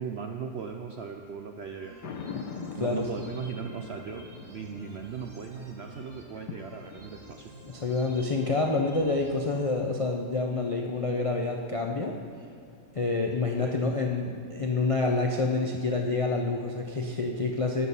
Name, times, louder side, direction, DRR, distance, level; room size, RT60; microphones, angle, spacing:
voice 1, 0.0-2.2 2.8-7.5 13.6-13.8, right 6 dB, 75° right, 4 dB, 0.5 m, -38 dB
sound 1, 1.7-9.7, right 1 dB, 40° right, 1.8 m, -51 dB
sound 2, 2.0-7.3, left 6 dB, 80° left, 1.4 m, -43 dB
voice 2, 2.8-3.1 7.6-12.2 12.9-17.9, left 3 dB, 60° left, 1 dB, 0.3 m, -28 dB
18.0 x 6.3 x 5.5 m, 2.5 s
omnidirectional pair, 1.8 m